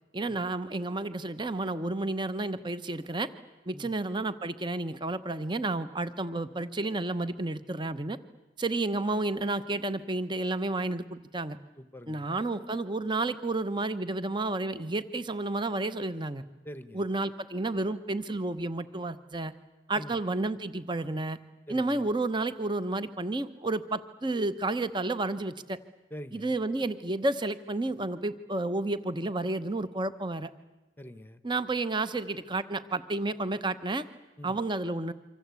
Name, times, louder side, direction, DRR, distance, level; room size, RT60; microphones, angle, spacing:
voice 1, 0.1-3.3 3.7-8.2 8.6-11.6 12.1-16.4 16.9-19.5 19.9-21.4 21.7-25.8 26.3-30.5 31.4-34.0 34.4-35.1, right 2 dB, 25° right, 12 dB, 0.9 m, -31 dB
voice 2, 11.8-12.3 16.6-17.1 19.9-20.1 21.7-22.1 26.1-26.5 31.0-31.4 34.4-34.6, equal, 10° left, 12 dB, 0.9 m, -44 dB
27.0 x 25.0 x 8.3 m, 1.1 s
head